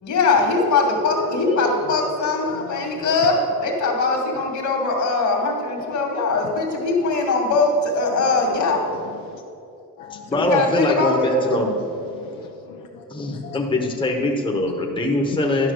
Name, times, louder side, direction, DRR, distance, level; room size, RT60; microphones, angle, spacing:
voice 1, 0.0-8.8 10.3-11.4, left 3 dB, 55° left, 1 dB, 2.2 m, -21 dB
voice 2, 1.2-1.9 2.5-2.9 3.2-3.4 7.0-7.1 8.1-8.3 8.6-9.4 10.0-10.3 10.7-10.8 11.3-13.6, left 5 dB, 75° left, 1 dB, 0.9 m, -37 dB
voice 3, 10.1-11.7 13.1-15.7, left 2 dB, 15° left, 1 dB, 1.1 m, -22 dB
11.5 x 5.7 x 6.4 m, 2.7 s
cardioid pair, 110°, 34 cm